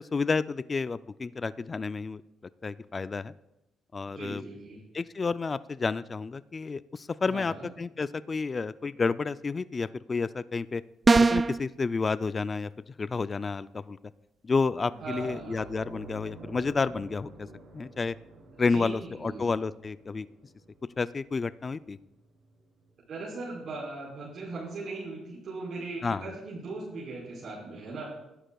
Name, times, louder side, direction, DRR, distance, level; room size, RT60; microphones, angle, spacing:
voice 1, 0.0-2.2 2.6-3.3 3.9-4.4 4.9-10.8 11.2-12.7 13.0-14.0 14.4-17.5 17.7-18.1 18.6-20.3 21.0-22.0 26.0-26.3, left 4 dB, 35° left, 15 dB, 0.3 m, -30 dB
voice 2, 4.1-4.8 7.3-7.7 15.0-15.6 18.7-19.5 23.1-28.0, right 3 dB, 60° right, -7 dB, 4.5 m, -39 dB
sound 1, 11.1-11.6, right 3 dB, 30° right, 0.4 m, -19 dB
sound 2, 14.9-23.8 24.2-24.4 26.4-26.5, right 3 dB, 75° right, 5.4 m, -49 dB
21.5 x 11.5 x 2.3 m, 0.91 s
cardioid pair, 90°, 0 cm